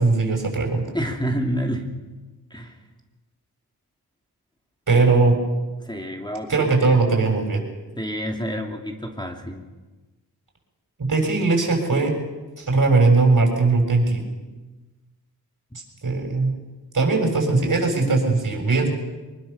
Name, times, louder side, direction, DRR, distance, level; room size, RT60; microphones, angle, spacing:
voice 1, 0.0-0.8 4.9-5.4 6.5-7.6 11.0-12.1 12.6-14.2 16.0-16.5 16.9-18.9, right 3 dB, 50° right, 2 dB, 7.2 m, -19 dB
voice 2, 0.9-1.9 2.5-2.8 5.8-7.0 8.0-9.6, equal, 10° left, 2 dB, 2.9 m, -28 dB
25.0 x 22.0 x 7.0 m, 1.2 s
wide cardioid pair, 80°, 39 cm